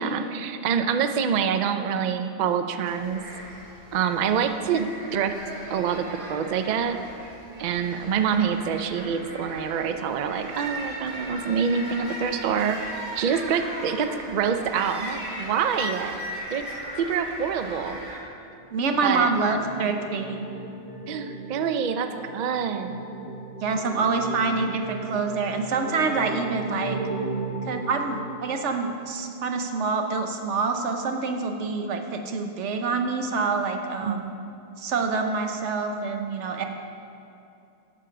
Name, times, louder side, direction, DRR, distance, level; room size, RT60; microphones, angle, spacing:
voice 1, 0.0-3.2 3.9-4.9 5.1-5.3 5.7-7.0 7.6-16.2 16.5-16.6 17.0-18.0 19.0-19.6 19.8-20.0 21.1-23.0 34.1-34.2, right 7 dB, 55° right, 8 dB, 0.5 m, -26 dB
sound 1, 2.9-18.2, equal, 70° right, 2.2 m, -38 dB
sound 2, 18.3-29.0, right 3 dB, 50° left, 1.6 m, -36 dB
voice 2, 18.7-20.5 23.6-27.0 27.6-34.3 34.8-36.6, right 4 dB, 90° right, 5 dB, 1.1 m, -26 dB
8.8 x 6.6 x 5.6 m, 2.7 s
omnidirectional pair, 1.2 m